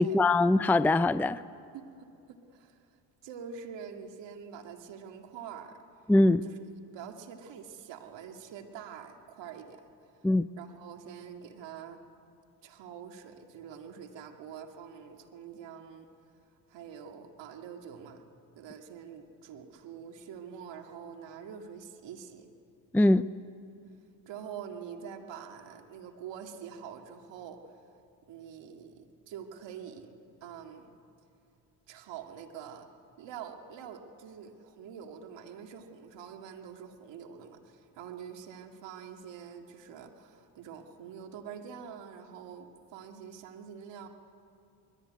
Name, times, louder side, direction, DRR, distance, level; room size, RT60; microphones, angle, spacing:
voice 1, 0.0-1.4 6.1-6.4 10.2-10.4 22.9-23.2, left 2 dB, 5° left, 14 dB, 0.5 m, -22 dB
voice 2, 1.7-2.8 3.2-5.8 6.4-6.6 6.9-9.8 10.6-12.0 12.6-16.1 16.7-18.3 18.6-22.5 24.3-27.6 28.3-30.1 30.4-30.9 31.9-32.9 33.2-44.1, right 7 dB, 75° right, 4 dB, 2.4 m, -45 dB
23.5 x 21.5 x 9.6 m, 2.5 s
supercardioid pair, 65°, 44 cm